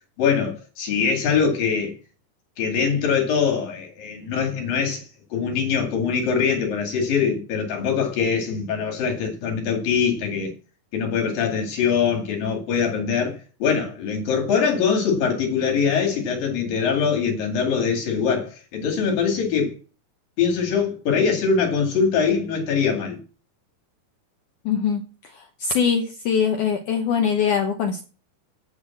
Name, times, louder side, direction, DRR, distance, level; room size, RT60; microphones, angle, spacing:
voice 1, 0.2-2.0 2.6-5.0 5.3-10.5 10.9-19.8 20.4-23.2, left 6 dB, 55° left, 3.7 m, -23 dB
voice 2, 24.7-25.0 25.3-28.0, left 7 dB, 75° left, 1.8 m, -22 dB
8.6 x 8.1 x 7.2 m
omnidirectional pair, 5.0 m